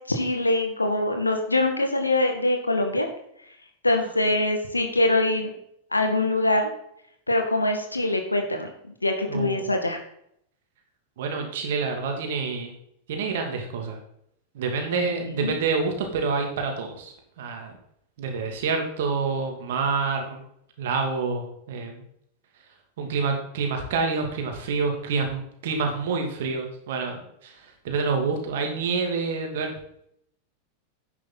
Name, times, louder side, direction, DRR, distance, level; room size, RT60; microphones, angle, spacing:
voice 1, 0.1-3.1 3.8-5.5 5.9-6.7 7.3-8.7 9.0-10.0 14.9-15.0 15.4-15.6, left 2 dB, 80° left, 5 dB, 2.0 m, -23 dB
voice 2, 9.3-9.6 11.2-12.7 13.1-14.0 14.5-17.7 18.2-20.4 20.8-22.0 23.0-29.7, right 4 dB, 55° right, 4 dB, 2.7 m, -27 dB
10.5 x 9.1 x 4.2 m, 0.71 s
figure-of-eight pair, 90°, 0 cm